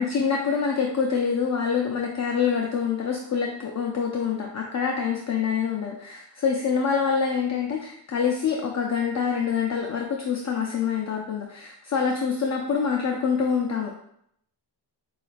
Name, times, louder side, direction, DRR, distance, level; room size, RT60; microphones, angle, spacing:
voice 1, 0.0-13.9, left 6 dB, 40° left, 0 dB, 0.5 m, -26 dB
6.8 x 2.4 x 2.5 m, 0.72 s
wide cardioid pair, 115°, 43 cm